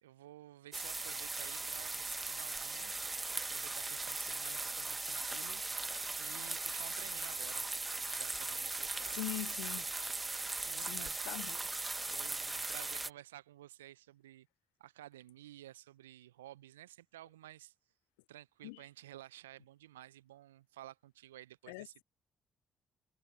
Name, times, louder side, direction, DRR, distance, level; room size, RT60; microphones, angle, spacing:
voice 1, 0.0-2.9 3.5-5.6 6.2-9.2 10.4-11.3 12.0-14.5 14.8-17.7 18.3-22.0, right 14 dB, 80° right, 0.8 m, -53 dB
sound 1, 0.7-13.1, right 3 dB, 25° right, 1.3 m, -39 dB
voice 2, 9.1-9.8 10.9-11.7 18.6-18.8 21.7-22.0, left 28 dB, 75° left, 0.5 m, -43 dB
figure-of-eight pair, 45°, 0 cm